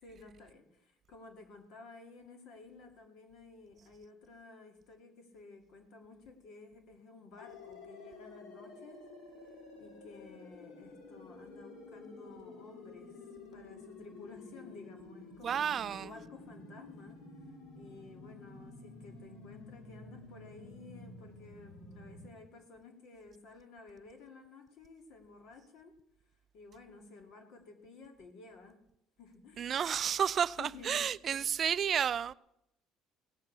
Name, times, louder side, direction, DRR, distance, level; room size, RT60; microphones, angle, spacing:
voice 1, 0.0-9.0 9.8-17.2 17.7-25.9 26.5-28.8 29.2-29.7 30.6-31.4, left 3 dB, 60° left, 2.5 m, -54 dB
sound 1, 7.4-22.3, left 3 dB, 90° left, 2.9 m, -51 dB
voice 2, 15.4-16.1 29.6-32.3, right 8 dB, 35° right, 0.4 m, -31 dB
17.0 x 7.5 x 6.8 m
cardioid pair, 150°, 0 cm